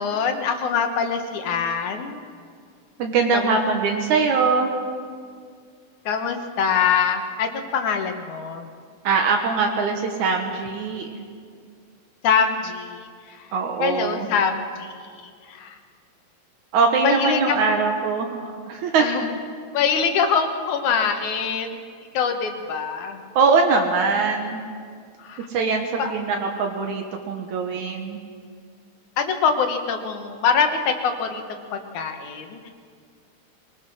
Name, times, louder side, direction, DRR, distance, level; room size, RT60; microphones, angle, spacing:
voice 1, 0.0-2.2 3.3-3.6 6.1-8.7 12.2-13.0 13.4-13.5 13.8-14.9 15.2-15.8 17.0-17.6 19.0-19.3 19.7-21.8 22.1-23.2 25.2-25.5 26.0-26.1 29.2-31.4 31.7-32.7, left 6 dB, 85° left, 5 dB, 2.8 m, -24 dB
voice 2, 3.0-4.7 9.0-11.2 13.5-14.3 16.7-19.0 23.4-24.6 25.5-28.2, right 4 dB, 80° right, 3 dB, 2.7 m, -22 dB
22.5 x 20.0 x 6.3 m, 2.1 s
omnidirectional pair, 3.3 m